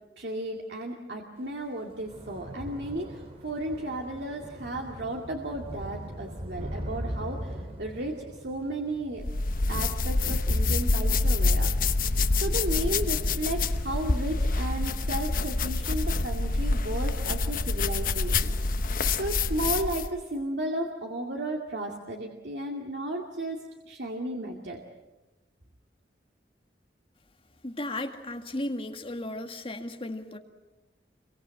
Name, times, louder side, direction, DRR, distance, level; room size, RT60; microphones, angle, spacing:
voice 1, 0.2-9.2 9.7-11.7 12.4-18.5 18.8-18.9 19.2-23.6 23.9-24.8, right 1 dB, 75° right, 1 dB, 2.3 m, -34 dB
Thunder / Rain, 1.5-18.1 18.4-18.8 19.1-19.3, equal, 35° right, 2.6 m, -42 dB
sound 1, 9.2-20.2, left 3 dB, 50° left, 1.0 m, -26 dB
voice 2, 27.6-30.4, left 1 dB, 30° left, 4 dB, 2.0 m, -35 dB
28.0 x 23.0 x 7.7 m, 1.1 s
head